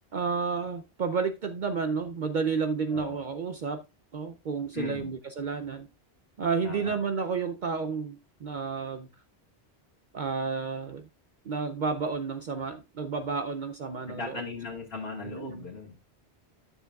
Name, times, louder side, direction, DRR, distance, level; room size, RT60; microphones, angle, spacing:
voice 1, 0.1-3.8 4.1-5.9 6.4-9.1 10.1-11.1 11.5-14.4 15.2-15.6, right 5 dB, 55° right, 0.6 m, -31 dB
voice 2, 4.7-5.1 6.6-7.0 14.1-16.0, left 4 dB, 65° left, 1.8 m, -38 dB
11.5 x 6.9 x 2.3 m
omnidirectional pair, 1.1 m